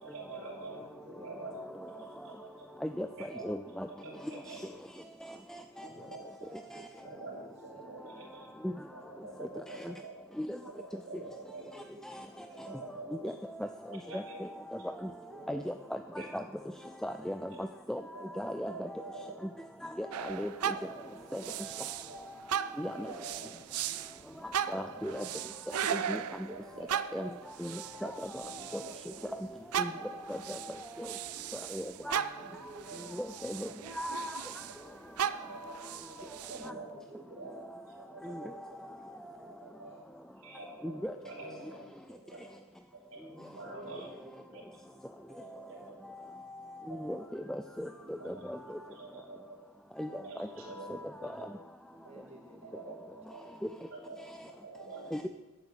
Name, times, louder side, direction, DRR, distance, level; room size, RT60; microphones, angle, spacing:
voice 1, 0.0-0.8 1.2-1.6 1.9-2.7 3.2-3.6 3.9-4.6 5.8-6.5 7.0-8.5 8.9-10.2 10.6-11.7 12.5-13.4 13.9-14.4 15.5-15.7 16.2-16.3 17.5-17.6 18.1-18.2 18.7-19.4 20.1-21.1 21.4-21.6 22.1-22.2 22.9-23.5 24.8-25.4 25.9-27.3 27.9-28.1 28.4-29.2 29.9-30.2 30.6-31.0 32.4-32.5 32.9-33.0 34.9-35.0 35.5-35.8 36.1-36.9 37.3-37.6 38.0-38.5 39.5-39.9 40.4-41.8 42.3-42.4 43.1-43.2 43.5-44.1 44.5-44.6 45.4-46.0 46.9-47.0 48.2-48.4 48.9-49.6 50.0-51.5 52.7-53.4 53.9-55.1, right 3 dB, 65° right, -6 dB, 3.4 m, -47 dB
voice 2, 0.6-2.9 4.0-5.7 6.5-9.4 11.5-13.5 14.1-14.3 15.3-17.2 20.6-21.8 23.3-25.3 28.6-30.7 32.0-35.5 36.6-40.1 41.4-42.6 43.3-45.0 45.4-45.7 46.9-47.1 47.9-49.1 51.8-53.6 54.1-54.3 55.2-55.3, right 1 dB, 30° right, -1 dB, 2.3 m, -57 dB
voice 3, 3.4-3.9 8.6-8.7 10.4-10.6 12.1-12.2 13.2-13.3 13.6-13.7 14.1-14.2 15.0-15.1 15.5-16.0 16.3-16.4 17.0-18.0 18.4-18.9 20.0-20.7 21.3-21.4 22.8-23.1 24.7-25.2 25.9-26.2 27.1-27.3 27.6-28.8 29.8-29.9 30.3-30.6 31.0-31.1 31.7-32.2 33.2-33.7 33.9-34.4 38.2-38.4 41.0-41.1 46.9-47.2 47.5-47.9 48.3-48.6 50.0-50.1 50.9-51.0 55.1-55.3, equal, ahead, 7 dB, 0.3 m, -36 dB
sound 1, 20.1-22.2 22.5-29.3 29.7-34.8 35.2-36.7, right 9 dB, 80° right, 0.5 m, -38 dB
11.0 x 7.2 x 8.2 m, 1.1 s
head